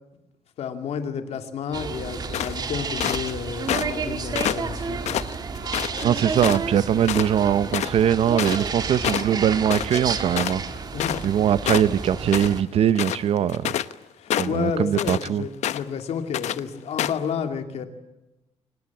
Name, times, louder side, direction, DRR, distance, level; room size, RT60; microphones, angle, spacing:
voice 1, 0.6-5.2 6.0-6.2 10.9-11.2 14.2-17.9, left 7 dB, 65° left, 2.6 m, -31 dB
sound 1, 1.7-12.6, right 5 dB, 35° right, 1.7 m, -31 dB
sound 2, 2.3-3.3 3.7-4.0 4.4-6.0 6.4-6.8 7.0-7.3 7.6-11.4 11.7-12.6 12.9-13.9 14.3-15.3 15.6-16.0 16.3-16.6 17.0-17.3, left 11 dB, 85° left, 0.9 m, -27 dB
voice 2, 6.0-10.6 11.2-13.7 14.4-15.4, right 9 dB, 60° right, 0.8 m, -21 dB
24.5 x 20.5 x 8.4 m
cardioid pair, 160°, 11 cm